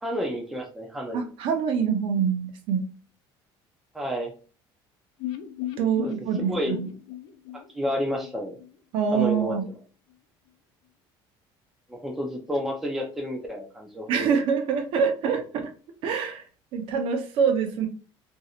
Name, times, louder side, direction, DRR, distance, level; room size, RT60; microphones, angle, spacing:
voice 1, 0.0-1.2 3.9-4.3 6.0-6.1 6.4-6.8 7.7-8.6 9.1-9.5 11.9-14.3, equal, 5° right, -1 dB, 0.6 m, -30 dB
voice 2, 1.1-2.9 5.8-6.9 8.9-9.7 14.1-15.7 16.0-16.5 16.7-17.9, right 6 dB, 65° right, 5 dB, 0.8 m, -25 dB
sound 1, 5.2-9.1 9.3-9.4 9.7-9.8, left 13 dB, 85° left, 0.5 m, -37 dB
3.1 x 2.7 x 2.4 m, 0.37 s
cardioid pair, 145°, 10 cm